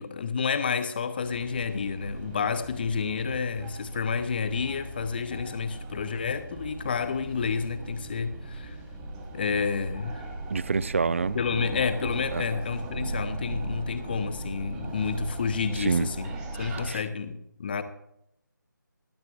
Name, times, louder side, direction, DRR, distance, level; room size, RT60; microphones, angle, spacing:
voice 1, 0.0-8.8 9.3-10.3 11.3-16.3 16.6-17.8, left 5 dB, 30° left, 0.9 m, -30 dB
sound 1, 1.2-16.9, right 2 dB, 10° right, 1.2 m, -38 dB
voice 2, 10.5-11.4 12.3-12.5 15.8-16.1 16.9-17.0, right 5 dB, 40° right, 0.4 m, -26 dB
18.5 x 12.0 x 2.5 m
figure-of-eight pair, 155°, 11 cm